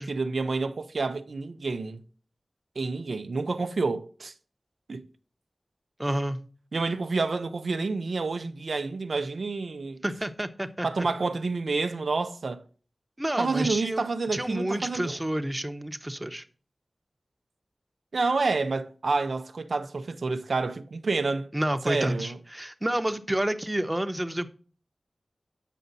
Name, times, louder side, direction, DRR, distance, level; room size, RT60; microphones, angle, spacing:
voice 1, 0.0-2.0 2.8-4.3 4.9-5.0 6.7-10.0 10.8-12.6 13.4-15.2 18.1-21.5 21.8-22.4, right 3 dB, 85° right, 0.6 m, -29 dB
voice 2, 6.0-6.4 10.0-11.1 13.2-16.4 21.5-24.5, right 1 dB, 20° right, 0.8 m, -29 dB
8.3 x 5.3 x 4.0 m
cardioid pair, 45°, 0 cm